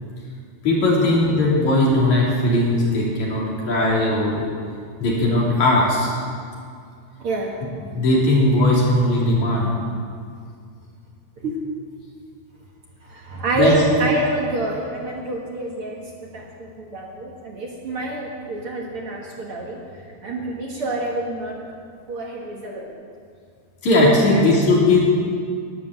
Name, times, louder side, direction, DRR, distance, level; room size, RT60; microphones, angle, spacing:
voice 1, 0.6-4.4 5.0-6.1 7.9-9.7 13.6-13.7 23.8-25.0, left 1 dB, 65° left, -5 dB, 4.5 m, -18 dB
voice 2, 7.2-7.6 11.4-11.6 13.0-21.6 22.1-22.9 24.3-24.5 24.8-24.9, right 2 dB, 50° right, -2 dB, 2.1 m, -27 dB
11.5 x 10.5 x 9.0 m, 2.2 s
omnidirectional pair, 3.5 m